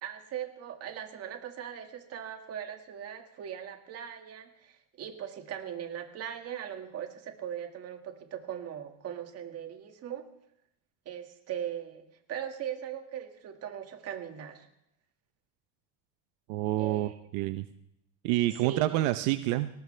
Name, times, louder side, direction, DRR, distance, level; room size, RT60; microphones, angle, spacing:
voice 1, 0.0-10.3 11.1-14.7 16.8-17.2 18.5-19.1, right 9 dB, 45° right, 6 dB, 1.9 m, -40 dB
voice 2, 16.5-17.7 18.2-19.7, right 15 dB, 80° right, 11 dB, 0.8 m, -28 dB
19.0 x 18.0 x 3.3 m, 0.79 s
cardioid pair, 140°, 36 cm